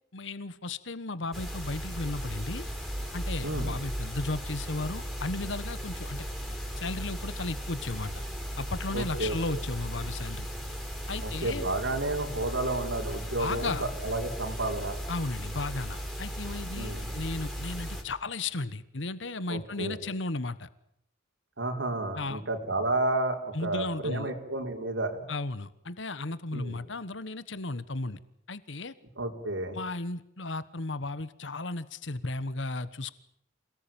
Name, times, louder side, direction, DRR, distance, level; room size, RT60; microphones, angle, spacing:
voice 1, 0.1-2.7 3.1-6.2 6.8-8.2 8.6-10.5 11.1-11.7 13.4-13.8 15.1-20.7 22.1-22.4 23.5-24.3 25.3-28.2 28.5-28.9 29.7-33.1, left 2 dB, 80° left, 16 dB, 1.3 m, -35 dB
sound 1, 1.3-18.0, equal, ahead, 5.0 m, -36 dB
voice 2, 3.4-3.8 8.9-9.6 11.2-15.0 16.7-17.1 19.5-20.0 21.6-25.3 26.5-26.8 29.2-29.8, right 2 dB, 85° right, 4 dB, 4.5 m, -31 dB
28.0 x 18.5 x 9.0 m, 0.73 s
head